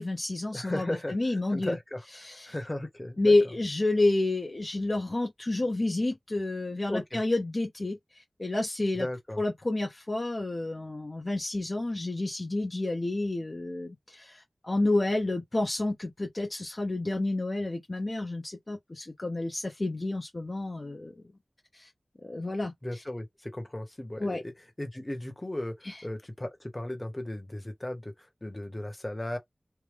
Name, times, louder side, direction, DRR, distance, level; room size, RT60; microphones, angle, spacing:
voice 1, 0.0-1.8 2.2-2.5 3.2-9.1 9.4-21.1 21.7-21.9 22.2-22.7 24.2-24.4 25.8-26.0, left 2 dB, 45° left, 0.9 m, -29 dB
voice 2, 0.5-2.0 2.5-3.3 6.9-7.2 8.9-9.4 22.8-24.5 24.8-28.1 28.4-29.4, left 1 dB, 30° left, 1.2 m, -36 dB
3.3 x 2.2 x 3.3 m
wide cardioid pair, 45°, 0 cm